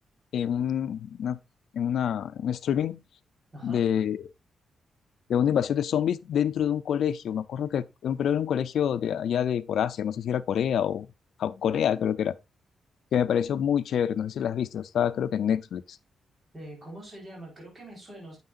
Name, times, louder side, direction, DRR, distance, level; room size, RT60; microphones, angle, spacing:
voice 1, 0.3-1.4 1.7-3.0 3.6-4.2 5.3-11.1 11.4-12.3 13.1-16.0, left 9 dB, 75° left, 0.5 m, -27 dB
voice 2, 16.5-18.4, right 1 dB, 25° right, 4.4 m, -43 dB
9.5 x 7.3 x 2.5 m
cardioid pair, 130°, 0 cm